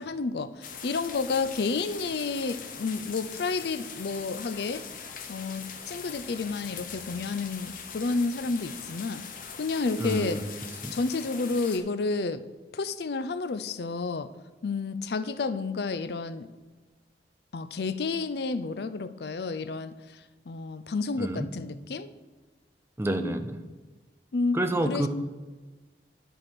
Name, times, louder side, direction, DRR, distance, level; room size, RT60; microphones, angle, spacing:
voice 1, 0.0-4.8 5.3-9.2 9.6-10.4 10.9-12.4 12.7-14.3 14.6-16.5 17.5-22.1 24.3-24.6 24.8-25.1, left 4 dB, 65° left, 12 dB, 0.5 m, -30 dB
sound 1, 0.6-11.8, left 6 dB, 50° left, 0.9 m, -41 dB
voice 2, 10.0-10.4 10.8-11.0 21.2-21.5 23.0-23.6 24.5-25.1, right 1 dB, 15° right, 8 dB, 0.5 m, -28 dB
10.0 x 4.8 x 6.0 m, 1.3 s
head